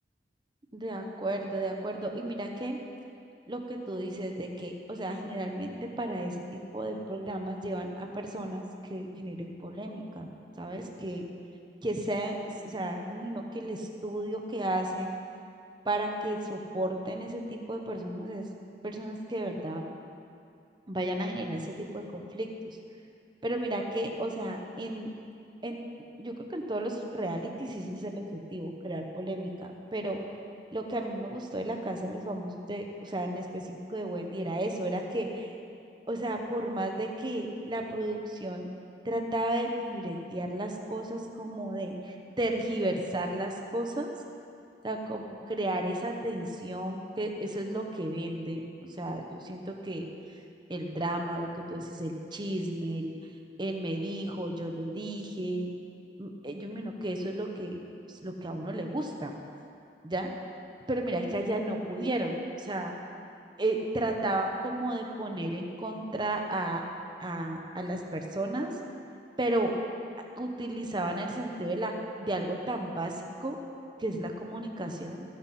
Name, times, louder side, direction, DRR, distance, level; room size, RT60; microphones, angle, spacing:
voice 1, 0.7-2.8 3.5-10.3 10.6-11.2 11.8-12.4 12.6-15.1 15.8-18.5 18.8-19.8 20.9-22.8 23.4-25.1 25.6-25.8 26.2-30.2 30.7-35.5 36.1-38.7 39.0-44.2 44.8-50.1 50.7-53.1 53.6-55.7 56.2-57.8 58.1-59.3 60.0-60.3 60.9-62.9 63.6-66.8 67.2-68.7 69.4-69.7 70.4-71.9 72.2-73.1 73.4-73.6 74.0-75.2, right 1 dB, 25° right, 3 dB, 0.9 m, -33 dB
14.5 x 9.8 x 4.3 m, 2.5 s
head